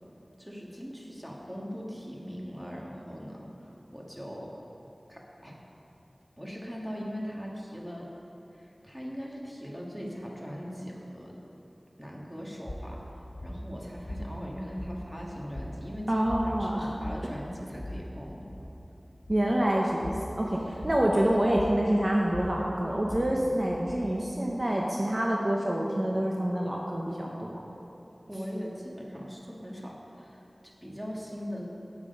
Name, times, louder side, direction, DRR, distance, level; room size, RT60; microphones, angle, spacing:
voice 1, 0.4-4.5 5.1-5.6 6.4-8.1 8.5-11.4 12.0-18.7 20.6-20.8 28.3-31.7, equal, 5° right, -3 dB, 1.7 m, -40 dB
sound 1, 12.6-24.6, equal, 55° left, 1.3 m, -41 dB
voice 2, 16.1-16.9 19.3-20.1 20.4-27.6, right 1 dB, 40° right, -2 dB, 0.9 m, -27 dB
9.0 x 8.4 x 5.3 m, 2.9 s
wide cardioid pair, 50°, 0 cm